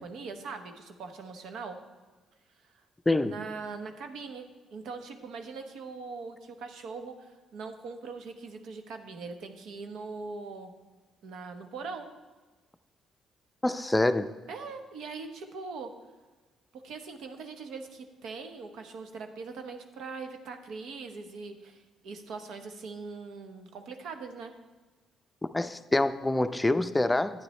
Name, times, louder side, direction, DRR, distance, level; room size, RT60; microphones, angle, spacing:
voice 1, 0.0-1.8 2.6-2.7 3.2-4.5 4.7-10.7 11.2-12.1 14.5-15.9 16.7-24.5, right 4 dB, 80° right, 6 dB, 1.0 m, -41 dB
voice 2, 3.1-3.4 13.6-14.3 25.5-27.4, left 2 dB, 15° left, 10 dB, 0.5 m, -26 dB
11.5 x 9.0 x 3.2 m, 1.2 s
cardioid pair, 90°, 0 cm